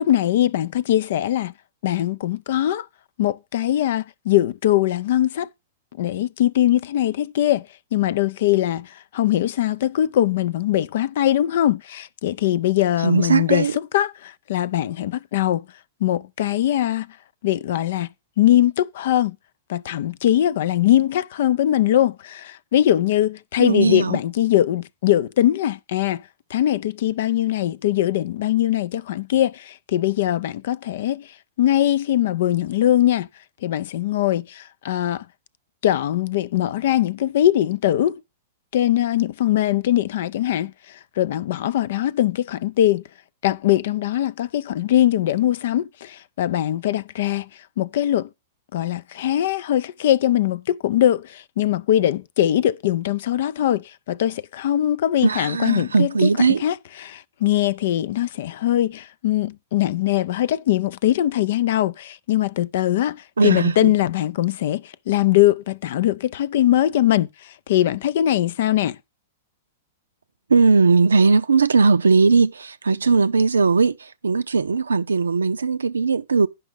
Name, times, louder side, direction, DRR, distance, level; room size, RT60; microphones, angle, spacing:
voice 1, 0.0-1.5 1.8-2.9 3.2-5.5 6.0-15.7 16.0-17.1 17.4-18.1 18.4-19.4 19.7-26.2 26.5-31.3 31.6-33.3 33.6-35.2 35.8-38.2 38.7-43.0 43.4-47.5 47.8-48.3 48.7-56.3 56.6-56.7 57.0-69.0, left 12 dB, 65° left, 0.4 m, -21 dB
voice 2, 13.0-13.7 23.6-24.2 55.2-56.6 63.4-63.9 70.5-76.5, right 4 dB, 90° right, 0.4 m, -18 dB
9.8 x 5.4 x 5.2 m
hypercardioid pair, 110°, 0 cm